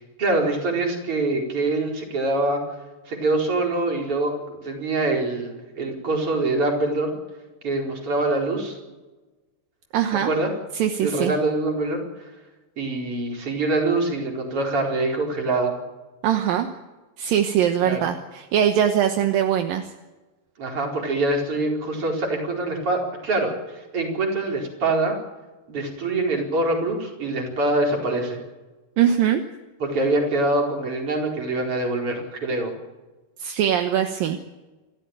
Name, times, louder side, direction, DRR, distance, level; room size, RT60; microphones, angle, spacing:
voice 1, 0.2-2.6 3.1-7.1 7.6-8.8 10.2-10.5 11.0-12.0 12.8-15.7 17.8-18.1 20.6-25.2 25.7-28.4 29.8-32.7, right 2 dB, 35° right, 1 dB, 5.2 m, -24 dB
voice 2, 9.9-10.3 10.7-11.3 16.2-16.7 17.2-19.9 29.0-29.4 33.4-34.4, right 9 dB, 75° right, 6 dB, 2.8 m, -21 dB
28.0 x 13.5 x 9.0 m, 1.2 s
omnidirectional pair, 4.3 m